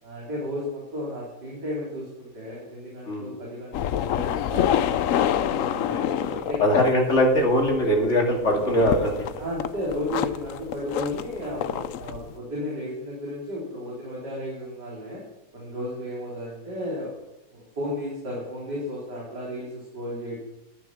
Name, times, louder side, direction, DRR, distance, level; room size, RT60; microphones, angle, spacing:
voice 1, 0.0-6.1 6.4-6.6 9.4-15.2 15.5-17.1 17.5-20.4, left 1 dB, 80° right, -5 dB, 4.1 m, -33 dB
sound 1, 3.7-8.1 8.4-12.3, left 10 dB, 65° left, 0.9 m, -27 dB
voice 2, 5.9-9.1 11.5-11.6, equal, 45° left, 0 dB, 2.9 m, -22 dB
12.5 x 10.0 x 5.9 m, 0.89 s
omnidirectional pair, 1.8 m